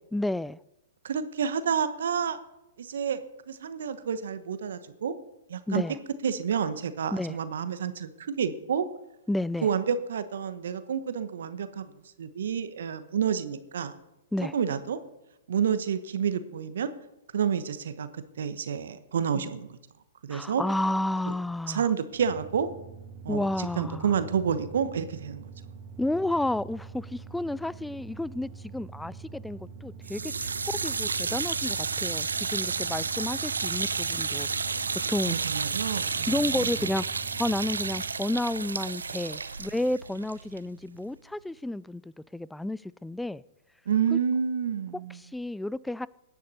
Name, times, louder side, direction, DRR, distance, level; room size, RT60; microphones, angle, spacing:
voice 1, 0.1-0.6 5.7-6.0 7.1-7.4 9.3-9.7 14.3-14.6 19.3-19.5 20.3-21.9 23.3-24.1 26.0-34.5 35.1-35.4 36.2-37.0 37.4-43.4 44.1-44.2 45.2-46.1, left 1 dB, 5° left, 0.3 m, -31 dB
voice 2, 1.0-2.4 2.8-3.2 3.5-5.1 5.5-5.8 6.2-8.9 9.6-11.9 12.2-13.9 14.5-15.0 15.5-16.9 17.3-19.8 20.2-20.6 21.7-22.7 23.2-25.5 35.3-36.7 43.9-45.2, right 7 dB, 70° right, 1.1 m, -29 dB
sound 1, 22.1-38.2, right 5 dB, 45° right, 1.5 m, -45 dB
sound 2, 30.0-41.1, right 5 dB, 85° right, 0.7 m, -31 dB
17.5 x 10.0 x 4.3 m
hypercardioid pair, 115°, 0 cm